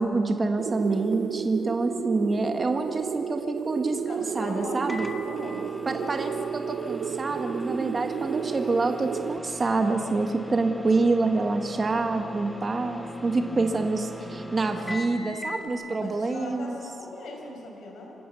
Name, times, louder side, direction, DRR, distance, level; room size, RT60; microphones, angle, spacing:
voice 1, 0.0-5.1 5.8-16.8, right 3 dB, 30° right, 5 dB, 1.4 m, -27 dB
sound 1, 0.6-9.4, right 7 dB, 65° right, 0.5 m, -32 dB
voice 2, 4.0-6.2 13.2-14.6 15.1-15.3 15.9-18.2, left 2 dB, 70° left, 0 dB, 6.0 m, -40 dB
Microwave oven, 4.9-15.7, left 1 dB, 10° left, 1.2 m, -40 dB
25.5 x 16.0 x 6.9 m, 2.8 s
cardioid pair, 105°, 0 cm